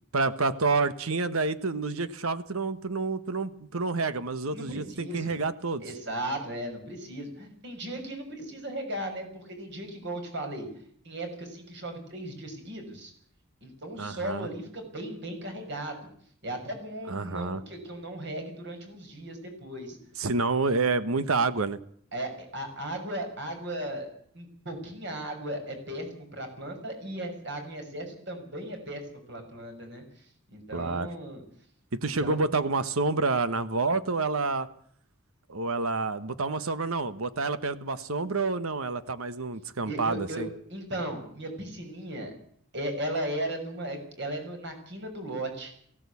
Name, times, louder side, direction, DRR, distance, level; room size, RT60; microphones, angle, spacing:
voice 1, 0.1-5.8 14.0-14.5 17.1-17.6 20.2-21.8 30.7-31.1 31.9-34.7 35.5-40.5, right 3 dB, 80° right, 13 dB, 1.2 m, -28 dB
voice 2, 4.5-5.3 5.8-10.7 11.0-13.1 13.6-15.9 16.4-20.0 22.1-24.1 24.3-30.3 30.5-31.4 32.0-32.5 39.8-42.3 42.7-45.7, right 1 dB, 55° right, 4 dB, 6.3 m, -36 dB
19.0 x 16.5 x 8.4 m, 0.62 s
head